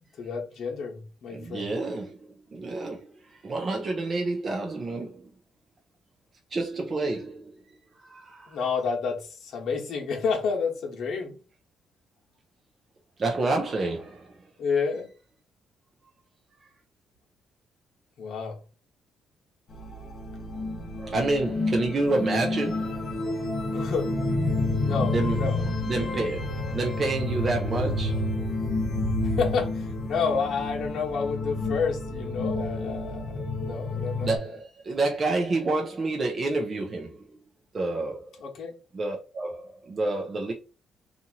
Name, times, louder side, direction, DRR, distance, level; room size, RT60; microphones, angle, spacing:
voice 1, 0.2-1.7 8.5-11.4 14.6-15.1 18.2-18.6 23.7-24.1 24.8-25.7 29.2-34.5 38.4-38.8, left 5 dB, 65° left, 1.0 m, -30 dB
voice 2, 1.3-2.2 2.5-3.1 3.4-5.3 6.5-7.5 8.0-8.6 10.1-10.2 13.2-14.4 21.0-23.1 24.9-28.2 34.2-37.2 37.7-38.3 38.9-40.5, right 2 dB, 35° right, 0.5 m, -29 dB
sound 1, 19.7-34.4, left 2 dB, 40° left, 1.1 m, -29 dB
2.8 x 2.5 x 2.8 m
cardioid pair, 115°, 0 cm